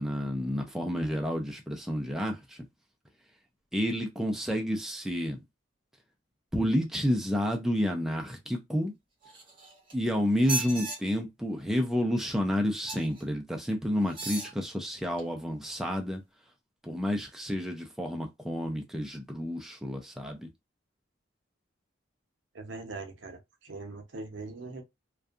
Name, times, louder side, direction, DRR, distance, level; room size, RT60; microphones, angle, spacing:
voice 1, 0.0-2.6 3.7-5.4 6.5-8.9 9.9-16.2 16.8-20.5, equal, ahead, 0.3 m, -30 dB
sound 1, 9.2-9.9 10.4-11.0 12.9-13.2 14.1-14.5 15.2-15.3, right 3 dB, 25° right, 0.9 m, -35 dB
voice 2, 22.5-24.8, right 3 dB, 70° right, 0.6 m, -41 dB
2.5 x 2.3 x 2.3 m
head